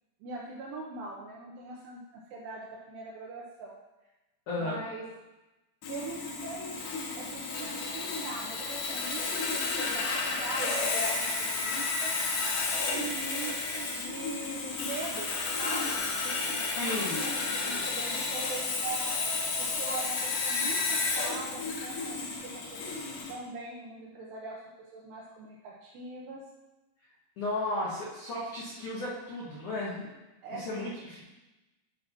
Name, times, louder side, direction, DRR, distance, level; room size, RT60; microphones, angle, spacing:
voice 1, 0.2-3.8 4.6-5.1 5.9-6.8 7.2-12.1 12.8-15.3 15.6-19.2 19.6-22.8 23.3-24.6 24.9-26.4 30.4-30.9, right 3 dB, 80° right, -3 dB, 2.5 m, -41 dB
voice 2, 4.5-4.8 16.7-17.2 27.4-30.1 30.5-31.2, left 2 dB, 90° left, -7 dB, 1.7 m, -34 dB
Sawing, 5.8-23.3, left 3 dB, 70° left, 2.6 m, -32 dB
11.5 x 5.7 x 2.9 m, 1.0 s
omnidirectional pair, 5.8 m